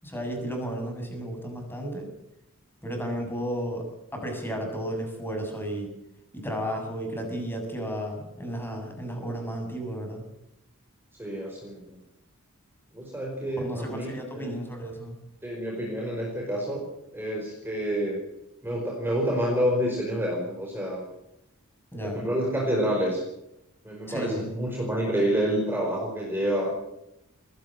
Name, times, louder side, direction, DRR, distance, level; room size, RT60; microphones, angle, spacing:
voice 1, 0.0-2.1 2.8-3.8 4.1-5.9 6.3-10.2 13.6-15.1 21.9-22.2 24.1-24.4, equal, 10° left, 2 dB, 7.2 m, -33 dB
voice 2, 11.2-12.0 12.9-14.6 15.4-16.8 17.1-18.2 18.6-21.0 22.0-23.2 23.8-26.7, equal, 10° right, -1 dB, 4.9 m, -28 dB
21.0 x 16.5 x 7.6 m, 0.85 s
head